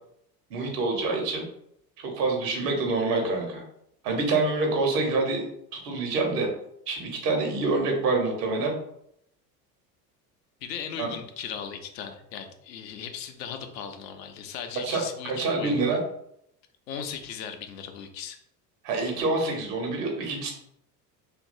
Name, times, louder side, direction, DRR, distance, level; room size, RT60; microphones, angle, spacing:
voice 1, 0.5-1.4 2.0-3.6 4.0-5.4 5.7-6.5 6.9-8.8 11.0-11.1 14.8-16.0 18.8-20.5, right 3 dB, 70° right, 1 dB, 1.1 m, -26 dB
voice 2, 10.6-15.7 16.9-18.4, left 8 dB, 75° left, 6 dB, 0.6 m, -37 dB
2.9 x 2.6 x 2.6 m, 0.74 s
hypercardioid pair, 70°, 50 cm